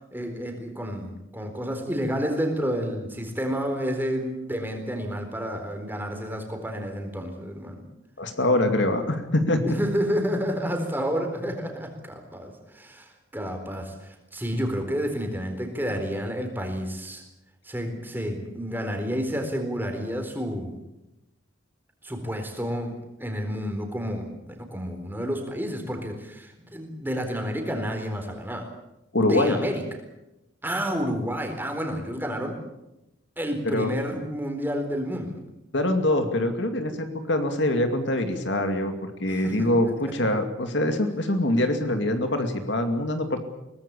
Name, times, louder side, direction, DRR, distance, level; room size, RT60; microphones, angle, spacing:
voice 1, 0.1-7.8 9.7-17.2 17.6-20.8 22.0-28.7 29.2-29.8 30.6-32.6 33.4-35.4 39.3-39.7, equal, 10° right, 4 dB, 4.1 m, -30 dB
voice 2, 8.2-9.8 29.1-29.6 33.6-33.9 35.7-43.4, left 1 dB, 60° left, 6 dB, 2.4 m, -24 dB
23.0 x 19.0 x 8.5 m, 0.93 s
head